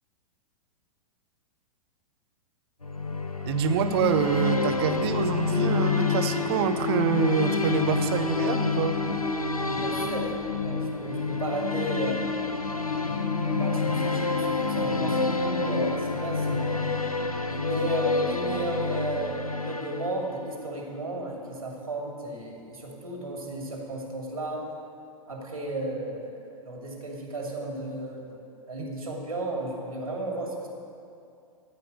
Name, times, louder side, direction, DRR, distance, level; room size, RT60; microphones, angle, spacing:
sound 1, 2.8-20.5, left 3 dB, 90° left, 0.7 m, -29 dB
voice 1, 3.4-9.0 28.8-28.9, right 8 dB, 45° right, 9 dB, 0.8 m, -26 dB
sound 2, 3.9-16.0, left 8 dB, 35° left, 1.0 m, -32 dB
voice 2, 9.7-10.3 10.6-13.2 13.4-16.8 17.5-24.6 25.3-28.4 28.7-30.7, right 2 dB, 75° right, -1 dB, 2.8 m, -34 dB
14.0 x 5.6 x 9.5 m, 2.5 s
figure-of-eight pair, 100°, 18 cm